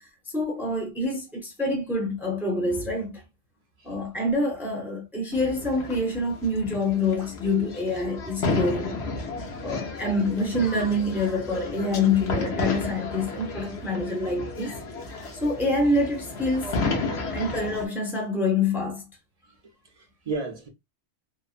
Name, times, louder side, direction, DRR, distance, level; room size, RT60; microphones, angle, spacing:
voice 1, 0.3-3.2 3.8-9.0 9.6-14.8 15.3-16.7 17.3-19.1, left 2 dB, ahead, 0.6 m, -26 dB
sound 1, 5.3-17.9, left 3 dB, 70° left, 1.0 m, -32 dB
voice 2, 17.1-17.6 19.9-20.7, right 3 dB, 40° right, 0.6 m, -35 dB
2.9 x 2.0 x 2.4 m
omnidirectional pair, 1.2 m